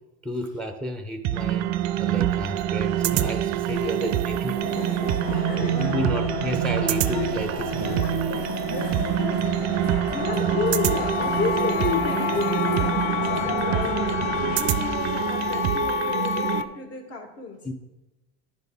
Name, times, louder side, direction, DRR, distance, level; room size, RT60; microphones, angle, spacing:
voice 1, 0.2-1.7 2.0-4.5 5.3-8.1 17.6-17.7, equal, 5° left, 6 dB, 0.5 m, -31 dB
sound 1, 1.2-16.6, right 11 dB, 55° right, 0.5 m, -26 dB
sound 2, 3.8-16.7, left 8 dB, 70° left, 0.5 m, -31 dB
sound 3, 4.6-14.6, left 4 dB, 85° left, 1.2 m, -35 dB
voice 2, 8.4-9.4 9.8-14.1 14.3-17.6, left 4 dB, 45° left, 2 dB, 1.5 m, -31 dB
10.5 x 4.1 x 3.5 m, 1.0 s
supercardioid pair, 125°, 33 cm